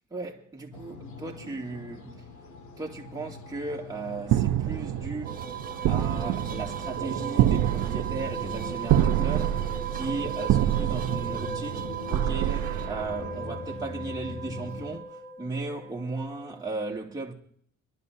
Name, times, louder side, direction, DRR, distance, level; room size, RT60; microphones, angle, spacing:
voice 1, 0.1-2.1 2.8-5.3 5.9-17.3, right 3 dB, 10° right, 2.4 m, -36 dB
sound 1, 0.7-15.0, left 3 dB, 75° left, 2.0 m, -43 dB
sound 2, 4.3-13.6, right 12 dB, 80° right, 0.8 m, -27 dB
sound 3, 5.2-16.6, right 6 dB, 30° right, 1.5 m, -37 dB
24.5 x 12.0 x 2.7 m
cardioid pair, 90°, 30 cm